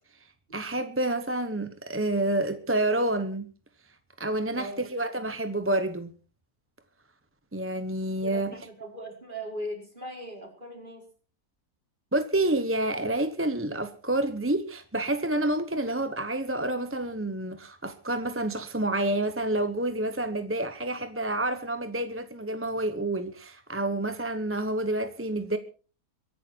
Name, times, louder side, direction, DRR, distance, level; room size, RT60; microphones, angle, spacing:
voice 1, 0.5-3.5 4.2-6.1 7.5-8.6 12.1-25.6, right 1 dB, 10° right, 0.7 m, -28 dB
voice 2, 4.5-4.9 8.2-11.0, equal, 30° right, 5.4 m, -39 dB
23.0 x 11.0 x 4.5 m
omnidirectional pair, 1.6 m